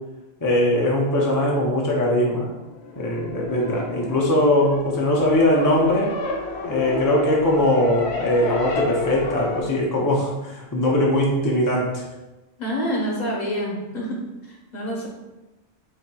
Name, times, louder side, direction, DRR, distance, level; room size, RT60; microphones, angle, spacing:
voice 1, 0.4-2.5 3.0-6.1 6.6-12.0, left 1 dB, 30° left, -3 dB, 0.4 m, -21 dB
sound 1, 2.5-9.6, left 3 dB, 80° left, 0.8 m, -31 dB
voice 2, 12.6-14.1 14.4-15.1, equal, 45° left, -2 dB, 0.8 m, -27 dB
4.4 x 2.7 x 2.2 m, 1.1 s
omnidirectional pair, 1.1 m